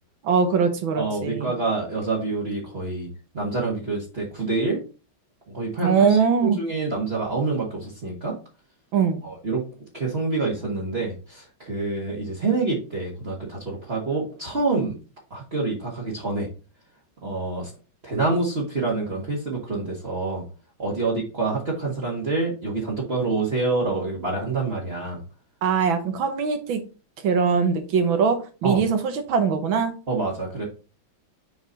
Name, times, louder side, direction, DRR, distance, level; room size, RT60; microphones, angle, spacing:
voice 1, 0.2-1.5 5.8-6.6 8.9-9.2 25.6-26.8 27.2-29.9, right 6 dB, 75° right, 7 dB, 1.9 m, -21 dB
voice 2, 0.9-3.1 3.3-4.8 5.5-8.4 9.2-9.6 9.9-14.9 15.3-16.5 17.2-17.7 18.0-20.4 20.8-25.2 28.6-28.8 30.1-30.6, right 3 dB, 30° right, -4 dB, 1.8 m, -27 dB
6.8 x 4.5 x 4.0 m, 0.33 s
omnidirectional pair, 2.2 m